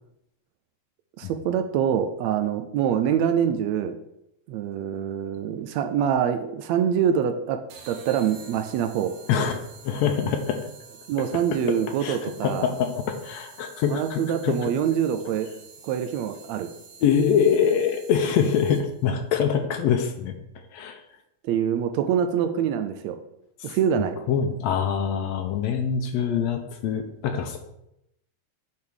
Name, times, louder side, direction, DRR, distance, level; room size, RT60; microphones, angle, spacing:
voice 1, 1.2-3.9 4.5-7.6 7.9-9.2 11.1-12.7 13.8-15.5 15.8-16.7 21.4-23.2 23.6-24.2, right 8 dB, 80° right, 8 dB, 1.7 m, -25 dB
sound 1, 7.7-19.1, right 5 dB, 65° right, 2.0 m, -48 dB
voice 2, 9.3-10.6 12.0-14.7 17.0-20.4 20.7-21.0 23.6-23.8 24.3-27.6, left 7 dB, 75° left, 6 dB, 1.8 m, -24 dB
8.6 x 3.6 x 6.2 m, 0.80 s
omnidirectional pair, 3.4 m